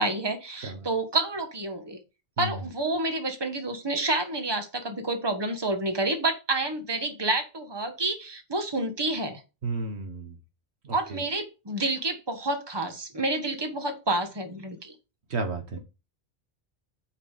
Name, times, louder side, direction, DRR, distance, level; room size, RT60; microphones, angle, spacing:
voice 1, 0.0-2.0 2.4-9.4 10.9-14.9, right 2 dB, 25° right, 6 dB, 1.4 m, -29 dB
voice 2, 9.6-10.4 10.8-11.2 15.3-15.8, right 3 dB, 85° right, 6 dB, 1.7 m, -32 dB
9.2 x 4.9 x 5.0 m, 0.29 s
omnidirectional pair, 1.1 m